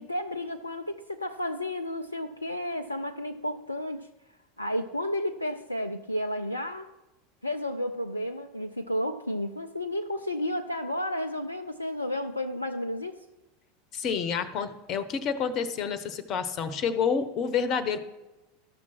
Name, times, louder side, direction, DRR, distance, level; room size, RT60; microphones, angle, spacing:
voice 1, 0.0-4.1 4.6-6.9 7.4-13.2, left 1 dB, 90° left, 7 dB, 0.4 m, -32 dB
voice 2, 13.9-18.0, left 6 dB, 40° left, 12 dB, 0.9 m, -29 dB
13.0 x 6.1 x 5.9 m, 1.1 s
figure-of-eight pair, 80°, 0 cm